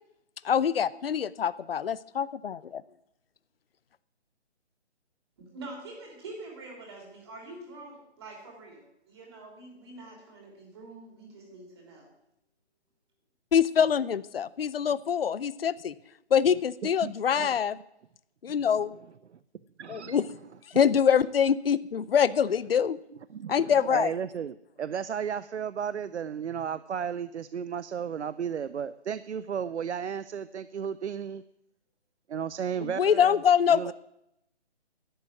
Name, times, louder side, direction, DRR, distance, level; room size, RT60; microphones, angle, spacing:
voice 1, 0.4-2.8 13.5-15.9 16.3-17.8 18.4-18.9 19.9-20.2 20.7-23.0 23.5-24.1 32.8-33.9, left 8 dB, 60° left, 18 dB, 0.6 m, -24 dB
voice 2, 5.4-12.1, right 2 dB, 25° right, 0 dB, 3.3 m, -45 dB
voice 3, 16.8-17.6 18.5-18.6 19.3-19.4 19.8-20.3 23.3-31.4 32.3-33.4 33.7-33.9, right 8 dB, 80° right, 16 dB, 0.6 m, -34 dB
11.0 x 7.7 x 9.5 m, 0.81 s
hypercardioid pair, 175°, 34 cm